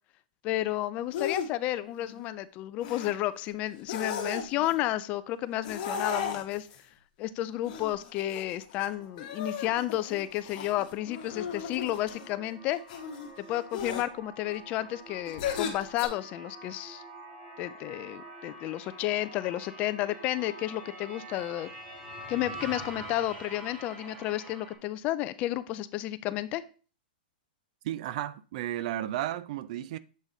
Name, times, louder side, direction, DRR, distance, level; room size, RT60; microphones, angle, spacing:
voice 1, 0.4-6.7 7.2-12.8 13.4-17.0 17.6-21.7 22.3-26.6, left 14 dB, 25° left, 0.3 m, -32 dB
sound 1, 1.1-1.5 1.9-2.2 2.8-3.1 3.8-4.7 5.6-6.8 7.7-8.9 9.2-12.3 12.9-13.3 13.7-14.0 15.3-16.1, left 7 dB, 50° left, 1.4 m, -35 dB
sound 2, 8.7-24.7, right 1 dB, 20° right, 1.9 m, -46 dB
voice 2, 27.8-30.0, right 13 dB, 45° right, 0.4 m, -33 dB
7.4 x 3.9 x 3.9 m
hypercardioid pair, 155°, 5 cm